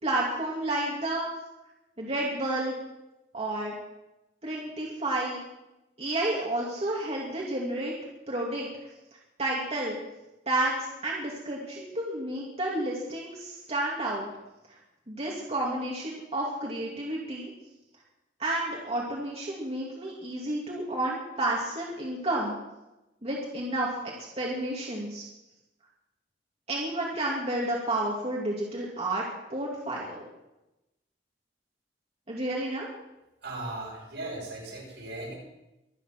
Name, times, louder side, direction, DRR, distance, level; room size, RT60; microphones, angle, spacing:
voice 1, 0.0-1.3 2.0-2.7 3.3-3.8 4.4-5.4 6.0-7.9 8.3-8.7 9.4-10.0 10.5-14.3 14.7-14.8 15.1-17.5 18.4-22.6 23.2-25.2 26.7-29.2 29.5-30.2 32.3-32.9, right 1 dB, 35° right, -3 dB, 2.7 m, -31 dB
voice 2, 33.4-35.4, right 2 dB, 70° right, -3 dB, 7.6 m, -37 dB
24.5 x 9.4 x 6.2 m, 0.97 s
head